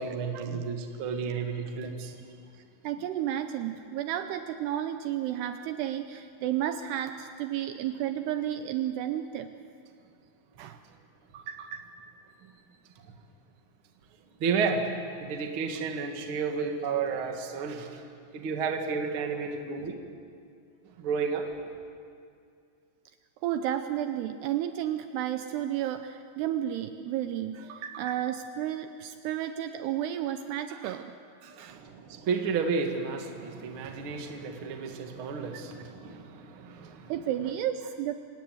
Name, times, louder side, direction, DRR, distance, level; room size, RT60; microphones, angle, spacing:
voice 1, 0.0-2.1 14.4-14.8 15.2-18.0 18.3-20.0 21.0-21.4 31.5-37.1 37.4-37.5, right 5 dB, 55° right, 4 dB, 1.5 m, -32 dB
voice 2, 2.8-9.5 10.6-10.8 11.3-11.9 23.4-31.1 31.4-31.8 37.1-38.2, right 11 dB, 80° right, 8 dB, 2.5 m, -32 dB
27.0 x 18.5 x 7.9 m, 2.3 s
omnidirectional pair, 5.3 m